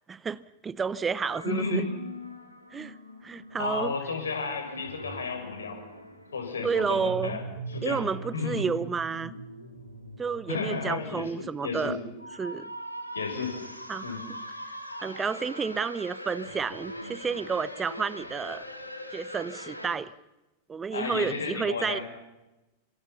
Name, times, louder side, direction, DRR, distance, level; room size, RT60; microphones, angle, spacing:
voice 1, 0.1-1.9 2.7-3.0 3.2-3.9 6.6-7.4 7.8-9.3 10.2-12.0 12.4-12.7 13.9-14.0 15.0-18.6 19.1-20.1 20.7-22.0, right 5 dB, 15° right, 20 dB, 0.8 m, -30 dB
sound 1, 1.2-20.0, left 1 dB, 90° left, 3.2 m, -43 dB
voice 2, 1.4-1.9 3.6-5.8 6.3-7.4 7.7-8.0 8.3-8.7 10.5-11.9 13.1-13.6 14.0-14.3 20.9-22.0, left 4 dB, 70° left, 4 dB, 6.7 m, -32 dB
sound 2, 6.9-10.6, right 4 dB, 80° right, 3.5 m, -41 dB
29.0 x 25.5 x 5.8 m, 1.0 s
figure-of-eight pair, 90°, 0 cm